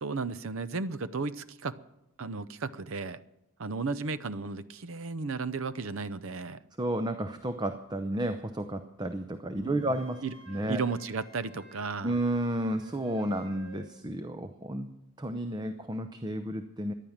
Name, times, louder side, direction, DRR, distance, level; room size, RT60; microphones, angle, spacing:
voice 1, 0.0-1.8 2.2-3.2 3.6-6.6 9.5-10.0 10.2-10.3 10.7-12.1, right 4 dB, 65° right, 15 dB, 0.7 m, -34 dB
voice 2, 6.8-10.8 12.0-14.9 15.2-16.9, right 1 dB, 20° right, 9 dB, 0.6 m, -32 dB
Wind instrument woodwind instrument, 9.7-13.9, equal, 85° right, 3.7 m, -54 dB
14.5 x 10.5 x 7.2 m, 0.86 s
head